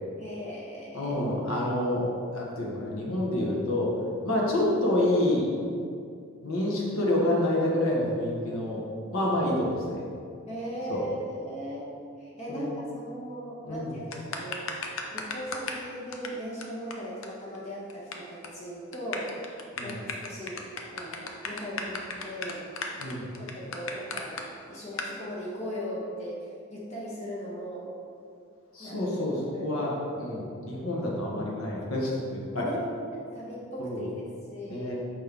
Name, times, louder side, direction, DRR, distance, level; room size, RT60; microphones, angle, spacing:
voice 1, 0.2-1.4 9.4-9.6 10.5-11.9 12.2-14.7 15.1-22.7 23.4-24.4 24.7-27.9 28.8-29.7 31.0-31.1 32.6-34.1 34.5-34.9, equal, 30° left, -5 dB, 1.3 m, -38 dB
voice 2, 0.9-3.9 4.2-5.5 6.4-8.8 9.1-9.7 10.9-11.0 12.5-12.7 13.6-13.9 19.8-20.0 23.0-23.3 28.7-32.7 33.8-34.1 34.7-34.9, left 1 dB, 85° left, -3 dB, 1.4 m, -28 dB
sound 1, 14.1-15.8 16.1-16.3 16.6-16.7 16.9-17.0 17.2-17.3 17.5-18.1 18.4-18.6 18.9-24.4 25.0-25.1, left 4 dB, 70° left, 0.6 m, -35 dB
5.9 x 5.2 x 3.7 m, 2.4 s
head